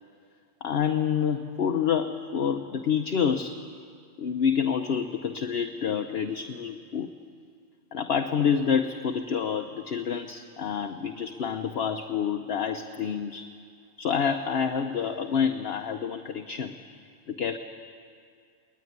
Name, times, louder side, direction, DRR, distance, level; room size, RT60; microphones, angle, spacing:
voice 1, 0.6-3.6 4.2-7.1 7.9-13.5 14.0-16.8 17.3-17.6, left 7 dB, 60° left, 6 dB, 1.1 m, -28 dB
22.5 x 19.0 x 9.4 m, 2.3 s
omnidirectional pair, 1.2 m